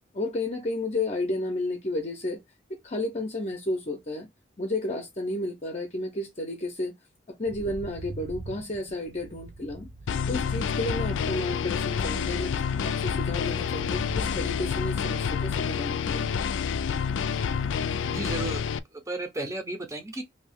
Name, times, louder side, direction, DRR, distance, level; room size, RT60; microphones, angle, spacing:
voice 1, 0.1-2.4 2.7-4.3 4.6-6.9 7.4-9.9 10.3-16.3, left 2 dB, 35° left, 0.6 m, -32 dB
sound 1, 7.5-18.6, right 2 dB, 60° right, 0.6 m, -44 dB
sound 2, 10.1-18.8, left 6 dB, 85° left, 0.3 m, -28 dB
voice 2, 18.1-18.6 19.1-20.2, right 1 dB, 15° right, 0.7 m, -33 dB
2.9 x 2.7 x 3.4 m
head